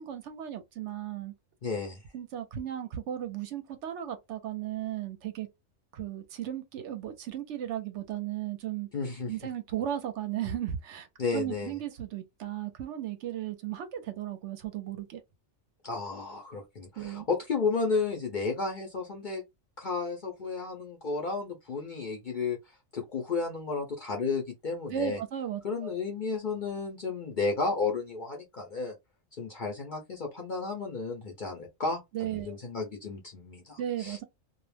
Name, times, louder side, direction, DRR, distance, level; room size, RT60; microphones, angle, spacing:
voice 1, 0.0-1.3 2.1-5.5 5.9-8.9 9.3-11.1 11.3-15.2 17.0-17.3 24.9-25.9 32.1-32.6 33.8-34.2, right 11 dB, 70° right, 0.8 m, -35 dB
voice 2, 1.6-2.0 8.9-9.3 11.2-11.8 15.8-19.4 19.8-22.6 22.9-25.2 25.6-28.9 29.3-34.2, left 4 dB, 50° left, 0.6 m, -33 dB
2.4 x 2.1 x 3.2 m
omnidirectional pair, 1.4 m